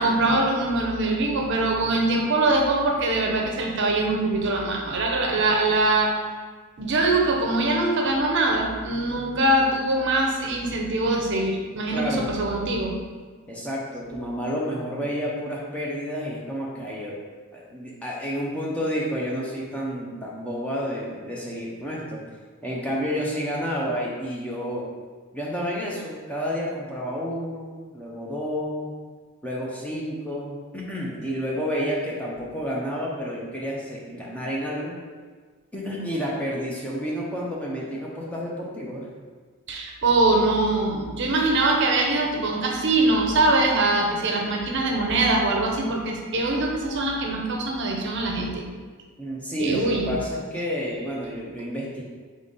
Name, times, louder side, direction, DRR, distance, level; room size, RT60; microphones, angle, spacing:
voice 1, 0.0-6.2 6.8-13.0 39.7-48.6 49.6-50.2, right 2 dB, 55° right, 0 dB, 0.6 m, -23 dB
voice 2, 11.9-12.4 13.5-17.2 17.5-22.2 22.6-24.9 25.3-28.9 29.4-35.0 35.7-39.1 49.2-52.0, equal, 5° left, -4 dB, 0.6 m, -30 dB
3.8 x 3.6 x 3.9 m, 1.5 s
head